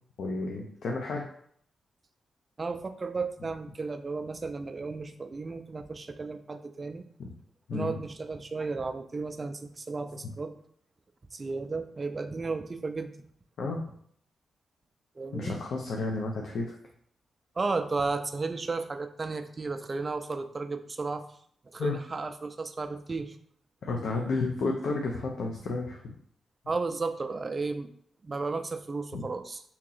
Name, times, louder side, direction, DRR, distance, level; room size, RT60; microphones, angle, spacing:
voice 1, 0.2-1.2 7.2-7.3 7.7-7.9 13.6-13.8 15.3-16.7 21.8-22.0 23.8-26.1 29.1-29.2, left 3 dB, 70° left, 0 dB, 0.5 m, -31 dB
voice 2, 2.6-7.0 7.7-10.6 11.3-13.1 15.2-15.6 17.6-21.2 21.7-23.4 26.7-27.9 28.2-29.6, right 3 dB, 30° right, 8 dB, 0.3 m, -34 dB
2.9 x 2.8 x 3.9 m, 0.63 s
wide cardioid pair, 135°, 0 cm